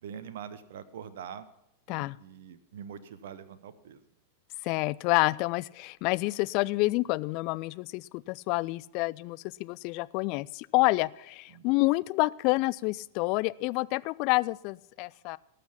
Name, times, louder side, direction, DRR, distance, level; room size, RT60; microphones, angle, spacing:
voice 1, 0.0-1.5 1.9-4.0 11.5-11.7, right 8 dB, 60° right, 13 dB, 0.8 m, -44 dB
voice 2, 4.6-15.4, left 22 dB, 45° left, 20 dB, 0.3 m, -28 dB
18.5 x 6.8 x 5.7 m, 0.85 s
figure-of-eight pair, 95°, 0 cm